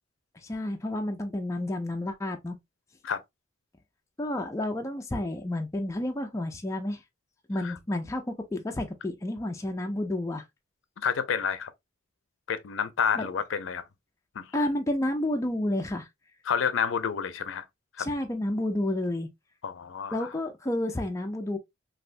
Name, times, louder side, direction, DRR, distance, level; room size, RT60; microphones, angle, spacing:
voice 1, 0.4-2.6 4.2-7.0 7.5-10.4 13.1-13.3 14.5-16.1 18.0-19.3 20.1-21.6, left 1 dB, 15° left, 0.4 m, -30 dB
voice 2, 11.0-11.7 12.5-13.8 14.4-14.5 16.5-17.6 18.0-18.1 19.6-20.3, left 7 dB, 75° left, 0.5 m, -29 dB
3.2 x 2.6 x 2.5 m
head